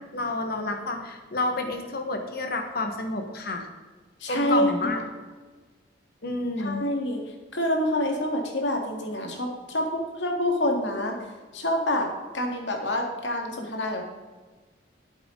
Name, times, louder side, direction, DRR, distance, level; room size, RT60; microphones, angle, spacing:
voice 1, 0.1-3.7 4.3-5.0 6.2-6.8, left 2 dB, 55° left, 5 dB, 1.5 m, -29 dB
voice 2, 4.2-5.0 6.6-7.2 7.5-11.2 11.5-14.1, left 1 dB, 80° left, 2 dB, 1.9 m, -27 dB
12.5 x 8.1 x 3.9 m, 1.4 s
head